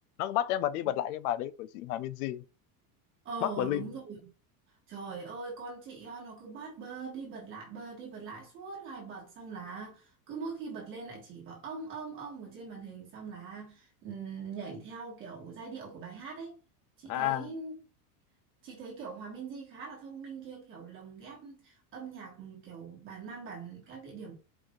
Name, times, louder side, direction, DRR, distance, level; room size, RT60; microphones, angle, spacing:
voice 1, 0.2-2.4 3.4-3.8 17.1-17.5, left 13 dB, 75° left, 0.6 m, -31 dB
voice 2, 3.2-4.3 4.9-16.6 17.0-17.7 18.6-24.3, right 5 dB, 25° right, 1.4 m, -42 dB
4.9 x 2.6 x 3.7 m
supercardioid pair, 170°, 45 cm